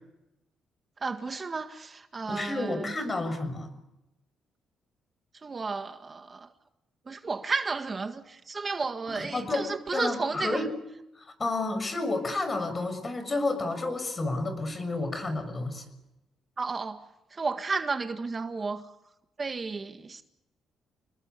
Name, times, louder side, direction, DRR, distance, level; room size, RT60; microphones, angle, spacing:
voice 1, 1.0-2.9 5.4-6.5 7.1-10.7 16.6-17.0 17.3-18.8 19.4-20.2, right 4 dB, 35° right, 1.7 m, -32 dB
voice 2, 2.3-3.7 9.1-10.7 11.1-15.8, left 2 dB, 30° left, 6.4 m, -31 dB
29.0 x 21.0 x 8.3 m
cardioid pair, 90°, 0 cm